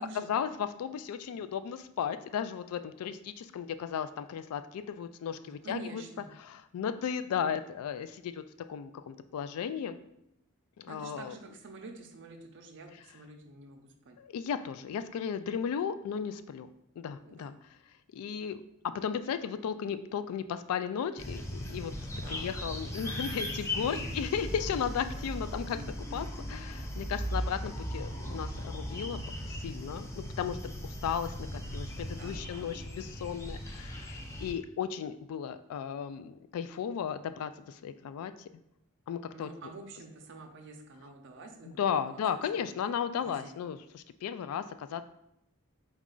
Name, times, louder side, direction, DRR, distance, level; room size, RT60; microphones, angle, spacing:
voice 1, 0.0-6.0 6.4-8.4 8.7-10.0 10.8-11.3 14.2-16.7 17.0-17.6 18.1-21.9 22.3-29.2 29.5-30.6 30.8-38.5 39.1-39.5 41.8-45.0, left 7 dB, 85° left, 13 dB, 0.3 m, -35 dB
voice 2, 5.4-6.3 10.9-14.2 17.2-17.5 22.1-24.1 32.1-32.6 39.3-42.8 43.2-43.6, right 3 dB, 60° right, 4 dB, 0.6 m, -48 dB
sound 1, 21.2-34.5, equal, 15° left, 0.4 m, -38 dB
4.1 x 2.4 x 3.7 m, 0.80 s
head